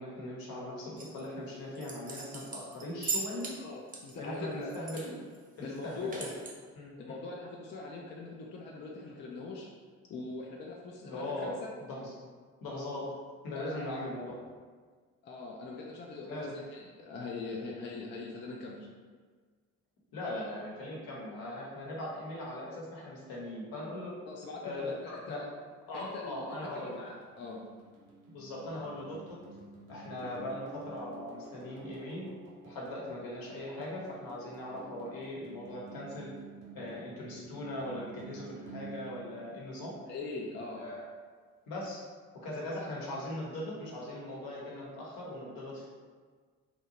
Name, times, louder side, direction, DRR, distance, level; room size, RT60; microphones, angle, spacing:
voice 1, 0.0-3.5 4.2-5.1 5.6-6.3 6.7-7.2 11.0-11.5 11.8-12.1 12.6-13.1 13.4-14.3 16.2-16.6 20.1-24.1 24.6-24.9 25.3-25.4 25.9-27.0 28.3-29.4 29.9-32.3 32.6-36.3 36.7-40.0 40.8-41.0 41.7-42.1 42.3-45.9, left 1 dB, 60° left, -4 dB, 1.0 m, -40 dB
sound 1, 1.0-1.2 1.7-3.6 3.9-5.1 5.3-5.4 5.8-6.5, right 4 dB, 20° right, 0.5 m, -38 dB
voice 2, 3.5-5.2 5.6-6.3 7.0-9.7 10.1-11.7 13.5-14.0 15.2-18.9 24.2-25.5 25.9-27.6 40.1-40.8, left 3 dB, 30° left, -2 dB, 0.4 m, -42 dB
sound 2, 26.1-40.3, right 4 dB, 80° right, 0.7 m, -51 dB
2.7 x 2.1 x 2.8 m, 1.6 s
hypercardioid pair, 45°, 40 cm